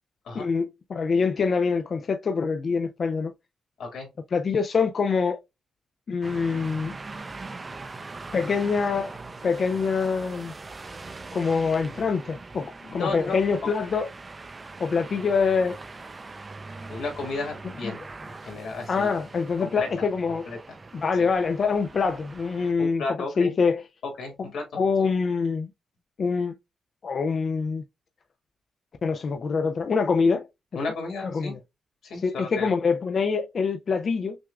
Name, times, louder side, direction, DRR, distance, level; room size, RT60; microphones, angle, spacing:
voice 1, 0.3-3.3 4.3-5.4 6.1-6.9 8.3-9.2 9.4-10.5 11.3-14.1 14.8-15.8 17.8-18.0 18.9-20.5 20.9-23.0 23.4-23.8 24.7-25.7 26.2-26.5 27.0-27.8 29.0-30.5 31.3-31.6 32.2-34.4, left 5 dB, 45° left, 0.3 m, -25 dB
sound 1, 6.2-22.7, right 3 dB, 25° right, 0.4 m, -42 dB
voice 2, 12.8-13.4 16.9-19.1 19.6-19.9 20.3-20.6 21.2-21.3 22.8-23.5 24.2-25.1 30.7-31.6 32.0-32.7, left 3 dB, 85° left, 1.9 m, -34 dB
6.0 x 2.3 x 2.3 m
wide cardioid pair, 140°, 0 cm